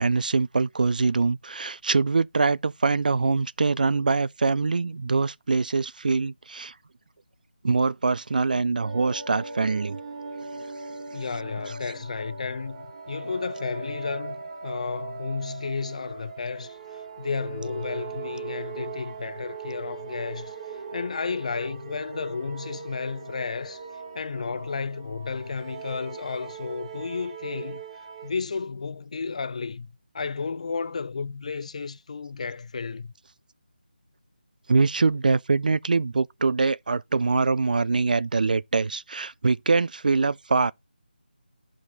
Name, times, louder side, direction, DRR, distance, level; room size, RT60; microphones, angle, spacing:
voice 1, 0.0-6.7 7.6-10.0 34.7-40.7, right 4 dB, 55° right, 0.4 m, -23 dB
sound 1, 8.8-28.3, right 5 dB, 35° right, 1.3 m, -39 dB
voice 2, 11.1-14.4 14.6-23.8 24.1-27.8 28.2-33.1, left 5 dB, 40° left, 0.5 m, -32 dB
11.0 x 5.0 x 4.0 m
figure-of-eight pair, 165°, 5 cm